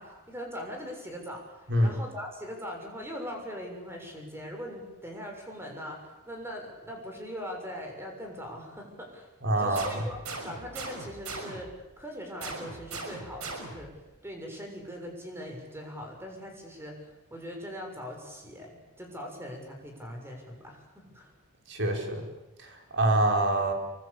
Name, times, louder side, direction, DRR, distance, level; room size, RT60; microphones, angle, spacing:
voice 1, 0.0-9.3 9.6-10.2 10.4-21.3, equal, 10° right, 2 dB, 6.8 m, -41 dB
voice 2, 9.4-10.0 21.7-22.3 22.6-23.7, right 1 dB, 55° right, 2 dB, 4.9 m, -26 dB
sound 1, 9.7-11.8 12.4-14.0, right 3 dB, 85° right, 6.3 m, -39 dB
27.5 x 24.5 x 8.4 m, 1.0 s
head